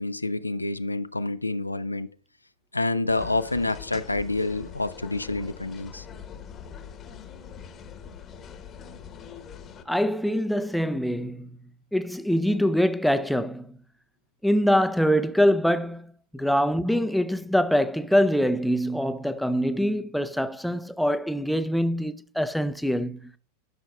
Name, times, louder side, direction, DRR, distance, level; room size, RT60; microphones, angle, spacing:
voice 1, 0.0-2.1 2.7-6.0, left 2 dB, 85° left, 0.4 m, -28 dB
sound 1, 3.1-9.8, left 7 dB, 30° left, 1.0 m, -43 dB
voice 2, 9.9-11.5 11.9-13.8 14.4-23.3, equal, ahead, 0.5 m, -24 dB
12.5 x 6.2 x 2.3 m
figure-of-eight pair, 90°, 0 cm